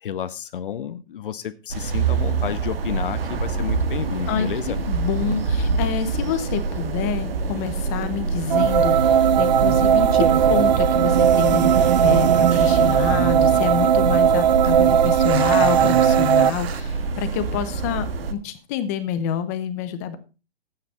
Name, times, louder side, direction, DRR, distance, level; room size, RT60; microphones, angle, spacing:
voice 1, 0.0-4.8, left 9 dB, 60° left, 0.9 m, -31 dB
sound 1, 1.7-18.3, right 4 dB, 70° right, 1.6 m, -26 dB
voice 2, 4.3-20.2, left 9 dB, 15° left, 0.7 m, -27 dB
sound 2, 8.5-16.5, right 9 dB, 50° right, 0.4 m, -18 dB
sound 3, 8.6-8.9 9.6-9.8 10.1-11.7 12.0-12.1 12.7-13.1 14.8-16.8, right 9 dB, 85° right, 0.9 m, -33 dB
11.5 x 8.9 x 4.2 m
hypercardioid pair, 170°, 30 cm